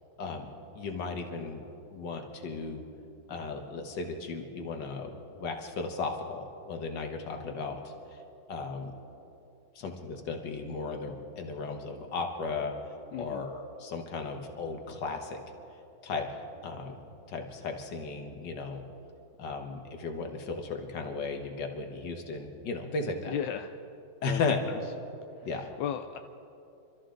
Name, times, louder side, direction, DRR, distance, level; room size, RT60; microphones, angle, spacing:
voice 1, 0.7-1.6 1.9-2.8 3.3-8.2 8.5-8.9 9.8-12.7 13.2-15.4 16.0-18.8 19.4-23.3 24.2-24.6 25.4-25.7, left 4 dB, 60° left, 4 dB, 1.8 m, -35 dB
voice 2, 13.1-13.5 23.3-23.7 24.2-24.8 25.4-26.2, left 10 dB, 75° left, 7 dB, 1.1 m, -36 dB
26.5 x 13.5 x 3.8 m, 2.8 s
omnidirectional pair, 2.3 m